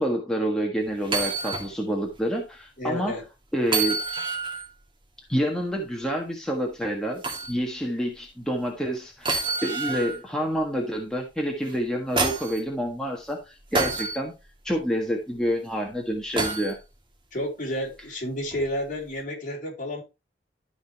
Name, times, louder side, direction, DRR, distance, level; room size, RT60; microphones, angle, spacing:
voice 1, 0.0-3.1 3.5-4.0 5.3-7.2 7.5-14.3 14.6-16.8, equal, 5° left, 0 dB, 1.5 m, -28 dB
sound 1, 1.0-1.7 2.1-2.2 3.6-4.7 7.2-7.5 9.2-10.2 11.7-12.6 13.7-14.2 16.4-16.7 18.5-18.6, right 3 dB, 30° right, 2.1 m, -27 dB
voice 2, 2.8-3.2 17.3-20.0, left 1 dB, 45° left, -1 dB, 3.8 m, -31 dB
12.5 x 5.2 x 3.3 m, 0.27 s
head